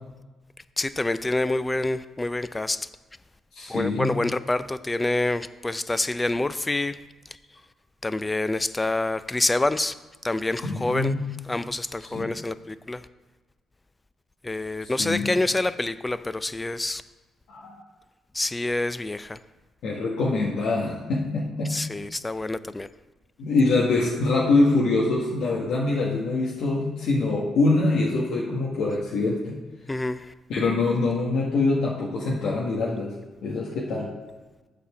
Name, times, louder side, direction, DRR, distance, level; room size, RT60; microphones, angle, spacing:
voice 1, 0.8-2.9 3.7-7.0 8.0-9.9 10.2-11.1 11.5-13.0 14.4-17.0 18.3-19.4 21.7-22.9 29.9-30.3, left 2 dB, 15° left, 14 dB, 0.4 m, -27 dB
voice 2, 3.5-4.1 10.6-11.2 12.0-12.3 14.8-15.3 17.5-17.7 19.8-21.7 23.4-29.6 30.5-33.1 33.4-34.1, left 3 dB, 75° left, -4 dB, 1.3 m, -24 dB
8.3 x 4.2 x 6.9 m, 1.2 s
cardioid pair, 90°, 0 cm